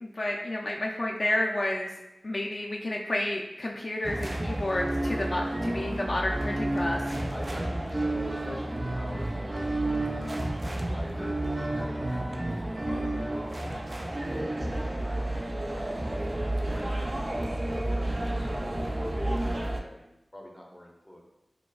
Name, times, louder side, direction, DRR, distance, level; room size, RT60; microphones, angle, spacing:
voice 1, 0.0-1.9 2.2-7.0 12.9-13.3, left 1 dB, 55° left, -1 dB, 0.3 m, -31 dB
sound 1, 4.0-19.8, right 1 dB, 40° right, 0.4 m, -31 dB
voice 2, 7.3-9.9 10.6-16.2 16.6-21.2, left 1 dB, 10° left, -1 dB, 0.7 m, -44 dB
4.7 x 2.1 x 2.3 m, 0.92 s
wide cardioid pair, 50°, 0 cm